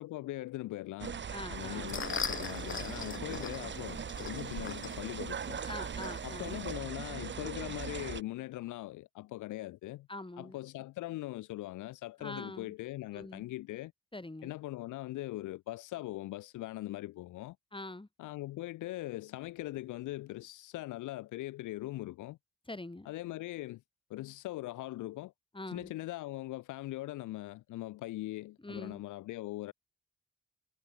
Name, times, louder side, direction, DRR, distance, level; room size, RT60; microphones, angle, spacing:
voice 1, 0.0-1.2 1.5-5.6 6.2-10.1 10.4-13.9 14.4-17.6 18.2-22.4 23.0-23.8 24.1-25.3 25.7-29.7, left 17 dB, 70° left, 0.9 m, -41 dB
sound 1, 1.0-8.2, right 7 dB, 35° right, 0.9 m, -40 dB
voice 2, 1.3-1.9 5.7-6.5 10.1-10.6 12.2-12.7 13.1-13.5 14.1-14.5 17.7-18.1 22.7-23.1 25.5-25.9 28.6-29.0, left 2 dB, 15° left, 5.1 m, -44 dB
sound 2, 1.5-6.7, left 6 dB, 40° left, 1.6 m, -41 dB
hypercardioid pair, 40°, 32 cm